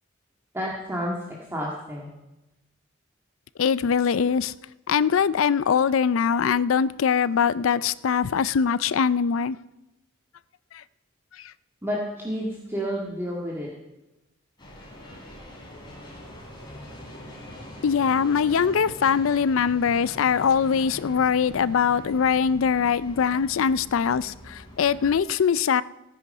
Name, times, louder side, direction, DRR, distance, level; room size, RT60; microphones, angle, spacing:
voice 1, 0.5-2.1 4.2-4.3 8.7-8.8 11.8-13.7, equal, 15° right, 1.9 m, -30 dB
voice 2, 3.6-4.5 4.9-9.6 10.7-10.8 11.4-11.5 17.8-25.8, left 6 dB, 75° left, 0.4 m, -22 dB
sound 1, 14.6-25.2, equal, 20° left, 3.6 m, -43 dB
16.5 x 9.5 x 5.5 m
head